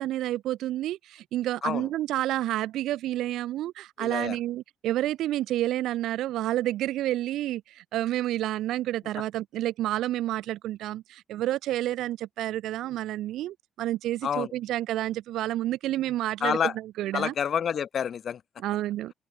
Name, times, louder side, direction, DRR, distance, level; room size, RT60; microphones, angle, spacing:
voice 1, 0.0-17.3 18.6-19.1, right 14 dB, 85° right, 0.5 m, -29 dB
voice 2, 4.0-4.4 14.2-14.5 16.4-16.7 17.1-18.4, left 8 dB, 55° left, 0.9 m, -28 dB
open air
cardioid pair, 90°, 0 cm